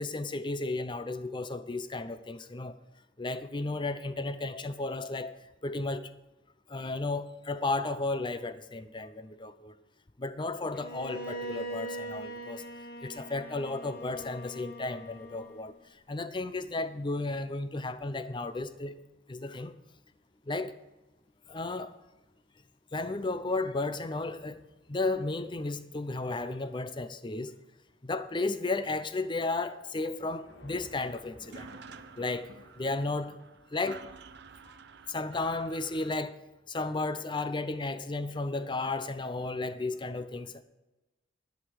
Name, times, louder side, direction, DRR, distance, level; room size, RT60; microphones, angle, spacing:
voice 1, 0.0-2.7 3.2-6.1 6.7-9.7 10.2-12.6 13.0-15.8 16.1-19.0 19.3-19.8 20.5-20.8 21.5-21.9 22.9-24.6 24.9-27.5 28.0-31.7 32.2-32.5 32.8-33.4 33.7-34.1 34.6-34.7 35.1-36.4 36.7-40.6, left 2 dB, 25° left, 0.6 m, -33 dB
Bowed string instrument, 10.7-15.8, right 1 dB, 55° left, 1.3 m, -41 dB
sound 1, 15.1-33.1, left 1 dB, 75° left, 1.9 m, -61 dB
sound 2, 31.3-36.1, right 5 dB, 60° right, 0.6 m, -50 dB
10.5 x 10.5 x 4.9 m
head